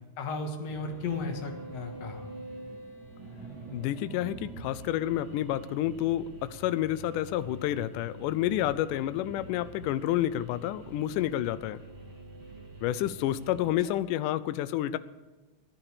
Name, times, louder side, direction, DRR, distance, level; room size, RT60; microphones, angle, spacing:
voice 1, 0.2-2.2 13.8-13.9, left 3 dB, 50° left, 4 dB, 2.4 m, -35 dB
sound 1, 0.6-13.7, right 2 dB, 35° right, 6.5 m, -45 dB
voice 2, 3.7-11.8 12.8-15.0, left 13 dB, 80° left, 15 dB, 2.0 m, -29 dB
16.0 x 10.0 x 6.8 m, 1.2 s
omnidirectional pair, 4.1 m